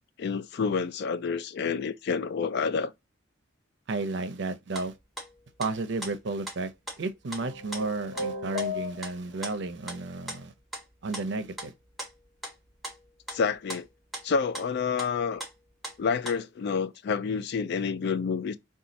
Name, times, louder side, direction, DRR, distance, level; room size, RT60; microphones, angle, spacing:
voice 1, 0.2-2.9 13.3-13.9 14.2-15.4 16.0-18.6, left 5 dB, 50° left, 0.3 m, -28 dB
voice 2, 3.9-4.9 5.6-6.7 7.0-10.5 11.0-11.7, right 3 dB, 55° right, 0.6 m, -32 dB
sound 1, 4.7-4.9 5.2-5.7 6.0-6.1 6.5-6.6 6.8-7.0 7.3-7.4 7.7-7.8 8.2-8.3 8.6-9.1 9.4-9.5 9.9-10.0 10.3-10.4 10.7-10.9 11.1-13.8 14.1-14.2 14.5-14.7 15.0-15.1 15.4-16.0 16.2-16.4, right 1 dB, ahead, 0.9 m, -39 dB
sound 2, 7.4-9.4, left 3 dB, 80° left, 1.2 m, -35 dB
4.0 x 2.3 x 2.5 m
head